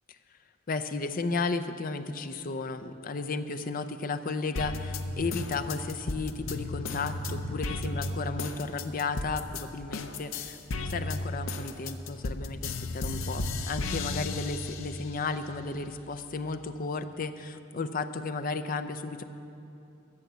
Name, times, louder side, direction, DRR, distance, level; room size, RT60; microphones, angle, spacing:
voice 1, 0.7-10.6 10.8-19.2, left 4 dB, 45° left, 10 dB, 0.5 m, -34 dB
sound 1, 4.6-9.6 9.9-15.1 15.6-16.6, left 2 dB, 80° left, 0.7 m, -34 dB
14.0 x 6.5 x 8.0 m, 2.8 s
head